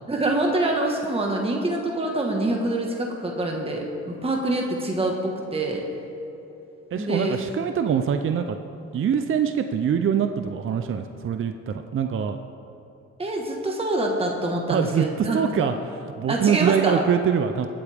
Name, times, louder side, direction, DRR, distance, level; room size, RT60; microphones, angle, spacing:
voice 1, 0.1-5.9 7.0-7.4 13.2-15.7 16.3-17.0, right 2 dB, 20° right, 0 dB, 1.5 m, -25 dB
voice 2, 6.9-8.6 8.9-12.4 14.7-15.7 16.2-17.7, right 8 dB, 45° right, 7 dB, 0.6 m, -24 dB
21.0 x 8.5 x 3.5 m, 2.8 s
cardioid pair, 90°, 30 cm